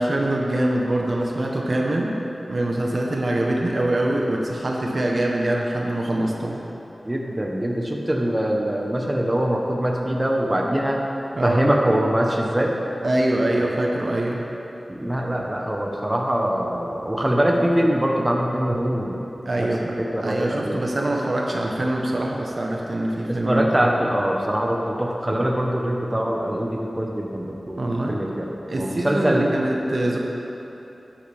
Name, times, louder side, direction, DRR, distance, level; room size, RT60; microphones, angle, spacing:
voice 1, 0.0-2.2 2.5-6.6 11.4-11.7 13.0-14.4 19.5-19.9 20.2-23.7 27.8-28.2 28.7-30.2, right 1 dB, 60° right, -1 dB, 1.1 m, -24 dB
voice 2, 7.0-11.0 11.4-12.8 14.9-19.3 19.6-20.9 23.3-27.8 28.1-28.5 28.8-29.5, right 1 dB, 20° right, 0 dB, 1.1 m, -23 dB
11.0 x 10.0 x 3.5 m, 3.0 s
wide cardioid pair, 55°, 0 cm